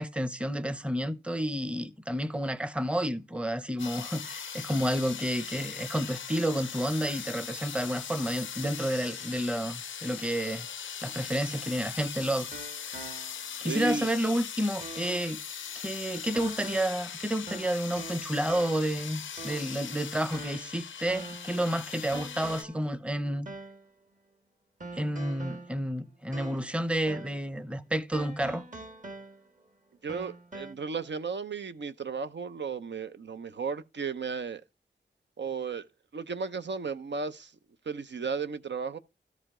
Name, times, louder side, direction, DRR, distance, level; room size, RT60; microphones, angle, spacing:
voice 1, 0.0-10.7 11.0-12.5 13.6-15.4 15.8-23.5 24.9-28.6, right 1 dB, 5° right, 0.8 m, -30 dB
sound 1, 3.8-22.6, left 7 dB, 80° left, 0.5 m, -40 dB
sound 2, 11.5-13.6 14.0-14.1 14.8-15.3 16.3-17.1 17.5-19.0 19.4-19.8 20.3-21.6 22.1-22.9 23.4-23.9 24.8-26.8 27.1-27.5 28.1-29.6 30.1-30.7, right 2 dB, 40° right, 1.5 m, -44 dB
voice 2, 13.7-14.1 30.0-34.6 35.4-35.9 36.1-37.5 37.9-39.0, right 5 dB, 65° right, 0.6 m, -34 dB
13.0 x 5.0 x 3.7 m
cardioid pair, 55°, 20 cm